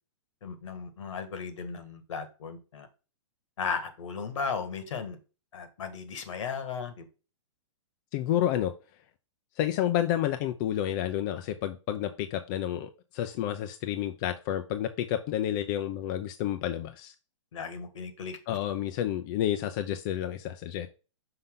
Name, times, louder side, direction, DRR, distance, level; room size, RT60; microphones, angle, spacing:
voice 1, 0.4-2.9 3.6-5.2 5.5-7.0 17.5-18.4, left 5 dB, 70° left, 1.7 m, -36 dB
voice 2, 8.1-8.7 9.6-17.1 18.5-20.9, left 11 dB, 40° left, 0.6 m, -30 dB
5.8 x 5.4 x 3.7 m
hypercardioid pair, 145°, 16 cm